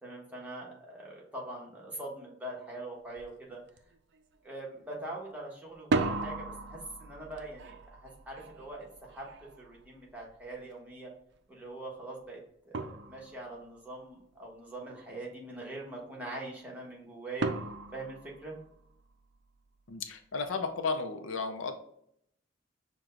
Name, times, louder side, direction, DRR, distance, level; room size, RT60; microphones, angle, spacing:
voice 1, 0.0-3.6 4.4-9.3 9.6-11.1 11.5-17.5 17.9-18.6, right 2 dB, 10° right, -3 dB, 1.1 m, -43 dB
sound 1, 3.2-3.3 3.7-4.2 5.7-10.6 12.2-12.3 12.7-13.7 17.4-19.1, right 3 dB, 65° right, 0.4 m, -36 dB
voice 2, 19.9-21.7, left 4 dB, 80° left, 7 dB, 0.5 m, -33 dB
6.1 x 2.2 x 3.8 m, 0.71 s
head